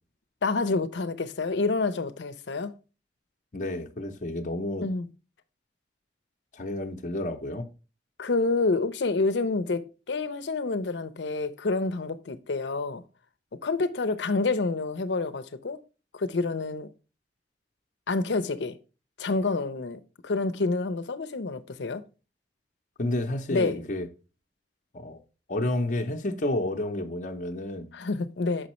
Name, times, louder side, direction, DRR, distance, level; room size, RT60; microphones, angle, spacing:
voice 1, 0.4-2.7 4.8-5.1 8.2-13.0 13.6-15.8 16.1-16.9 18.1-18.8 19.2-22.0 23.5-23.8 27.9-28.7, left 3 dB, 85° left, 0.6 m, -28 dB
voice 2, 3.5-4.9 6.5-7.7 23.0-24.1 24.9-25.2 25.5-27.9, left 1 dB, 45° left, 0.7 m, -30 dB
6.2 x 5.2 x 3.0 m
head